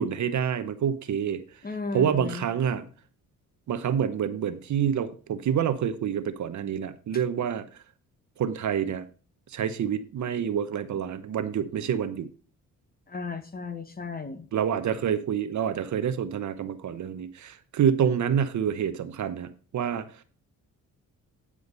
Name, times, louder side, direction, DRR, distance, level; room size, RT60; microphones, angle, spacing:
voice 1, 0.0-1.4 1.9-2.8 3.7-7.6 8.4-9.1 9.5-12.3 14.5-20.1, right 8 dB, 60° right, 0.9 m, -27 dB
voice 2, 1.6-2.5 13.1-14.5, left 4 dB, 25° left, 1.4 m, -35 dB
9.7 x 5.0 x 5.3 m
cardioid pair, 80°, 33 cm